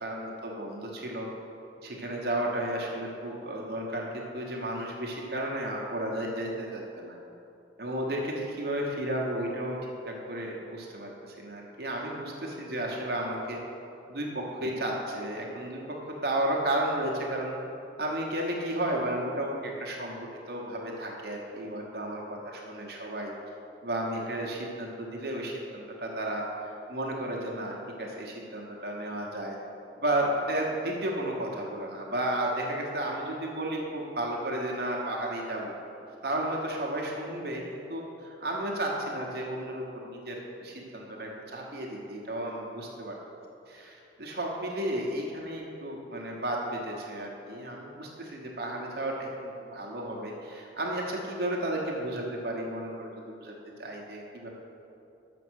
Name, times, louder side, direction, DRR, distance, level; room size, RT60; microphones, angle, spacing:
voice 1, 0.0-1.3 1.8-7.2 7.8-9.7 10.1-13.6 14.1-15.8 16.1-17.5 18.0-23.3 23.8-29.6 30.0-35.7 36.2-43.1 43.7-53.5 53.8-54.5, right 1 dB, 60° right, -1 dB, 1.1 m, -33 dB
7.0 x 6.1 x 6.3 m, 2.8 s
head